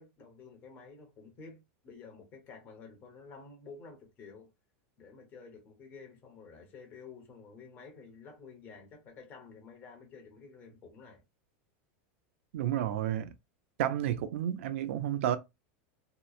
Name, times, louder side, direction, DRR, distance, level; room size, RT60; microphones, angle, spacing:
voice 1, 0.0-4.5 5.0-11.2, left 4 dB, 30° left, 0.9 m, -51 dB
voice 2, 12.5-13.3 13.8-15.4, right 11 dB, 80° right, 0.4 m, -31 dB
2.9 x 2.0 x 2.4 m
supercardioid pair, 165°, 7 cm